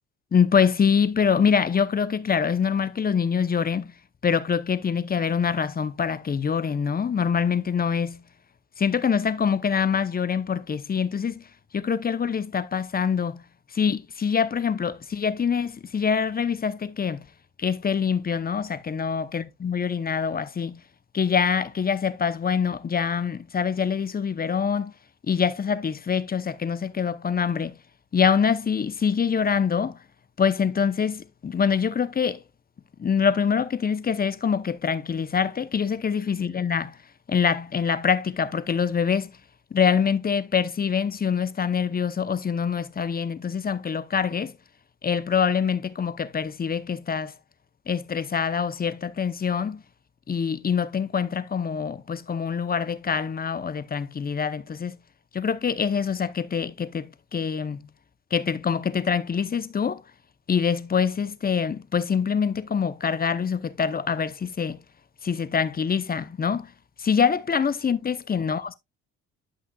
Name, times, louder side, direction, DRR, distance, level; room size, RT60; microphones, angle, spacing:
voice 1, 0.3-3.9 4.2-8.2 8.8-11.4 11.7-13.4 13.7-17.2 17.6-20.8 21.1-24.9 25.3-27.8 28.1-30.0 30.4-32.4 33.0-36.9 37.3-39.3 39.7-44.5 45.0-47.3 47.9-49.8 50.3-55.0 55.3-57.9 58.3-60.0 60.5-64.8 65.2-66.7 67.0-68.7, left 6 dB, 30° left, 0.7 m, -25 dB
11.5 x 5.7 x 2.3 m
cardioid pair, 90°, 30 cm